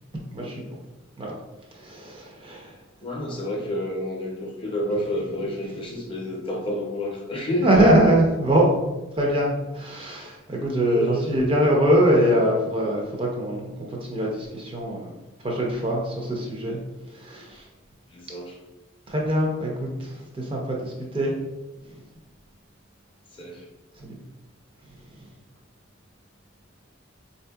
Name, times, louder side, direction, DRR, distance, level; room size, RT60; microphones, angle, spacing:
voice 1, 0.3-0.6 1.2-1.3 1.7-2.8 7.6-8.7 9.1-15.1 15.4-16.8 17.1-17.7 19.1-21.3 21.8-22.0 24.0-24.2, right 1 dB, 25° right, -1 dB, 0.5 m, -23 dB
voice 2, 3.0-7.9 10.9-11.4 18.1-18.5 23.3-23.6, equal, 25° left, -2 dB, 0.5 m, -29 dB
4.0 x 2.7 x 2.2 m, 1.1 s
head